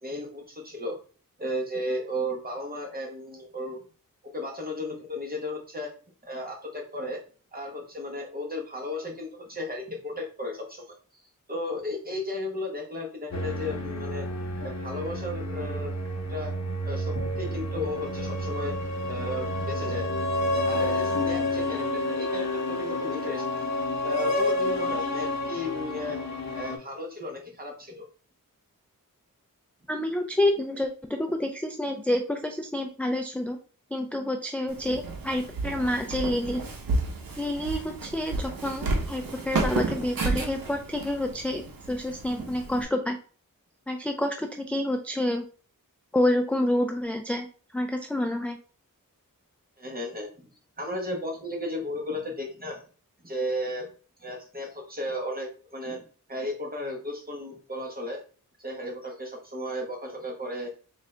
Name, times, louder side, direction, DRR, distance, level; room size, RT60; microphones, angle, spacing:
voice 1, 0.0-1.0 1.4-3.8 4.3-5.9 6.2-7.2 7.5-10.9 11.5-14.3 14.6-15.9 16.3-16.5 16.8-18.8 19.1-20.1 20.7-23.4 24.0-26.2 26.5-28.1 49.8-50.3 50.8-52.8 53.2-53.9 54.2-58.2 58.6-60.7, left 1 dB, 25° right, 0 dB, 1.1 m, -34 dB
sound 1, 13.3-26.8, left 1 dB, 50° left, 0.9 m, -29 dB
voice 2, 29.9-33.6 33.9-36.6 37.4-41.6 41.9-43.2 43.9-45.4 46.1-47.5 47.7-48.6, left 1 dB, 5° left, 4 dB, 0.3 m, -28 dB
Walk footsteps, 34.7-42.8, right 3 dB, 90° right, 0.7 m, -32 dB
3.8 x 2.5 x 3.2 m, 0.39 s
wide cardioid pair, 95°, 34 cm